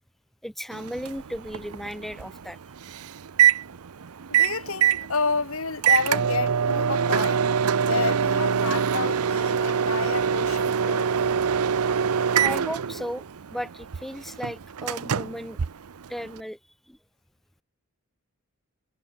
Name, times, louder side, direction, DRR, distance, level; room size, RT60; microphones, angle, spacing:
voice 1, 0.4-2.6 12.4-13.2 13.5-15.6 16.1-16.6 16.9-17.0, equal, ahead, 2.8 m, -35 dB
Microwave oven, 0.7-16.4, right 7 dB, 85° right, 0.6 m, -25 dB
voice 2, 4.3-11.1, left 4 dB, 70° left, 2.2 m, -30 dB
head